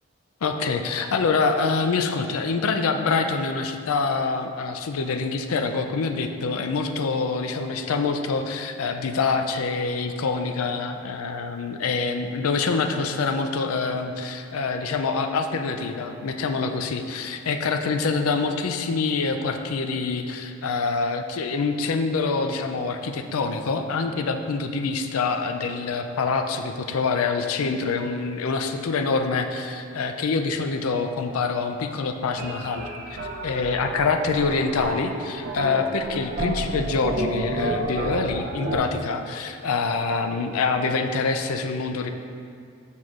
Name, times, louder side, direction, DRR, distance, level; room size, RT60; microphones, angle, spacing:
voice 1, 0.4-42.1, left 4 dB, 85° left, 7 dB, 0.4 m, -26 dB
sound 1, 32.4-38.8, right 1 dB, 45° right, 0.6 m, -30 dB
7.2 x 6.1 x 2.5 m, 2.3 s
head